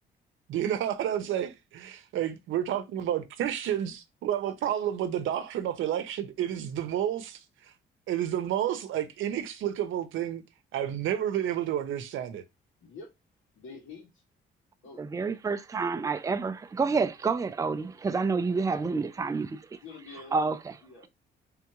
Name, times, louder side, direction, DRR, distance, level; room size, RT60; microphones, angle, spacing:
voice 1, 0.5-7.4 8.1-10.4 10.7-12.4, right 10 dB, 80° right, 0.7 m, -30 dB
voice 2, 13.6-14.2 14.8-15.0 19.8-21.1, left 3 dB, 80° left, 2.1 m, -47 dB
voice 3, 15.0-19.8 20.3-20.7, right 4 dB, 15° right, 0.4 m, -29 dB
3.5 x 3.5 x 3.0 m
cardioid pair, 90°, 20 cm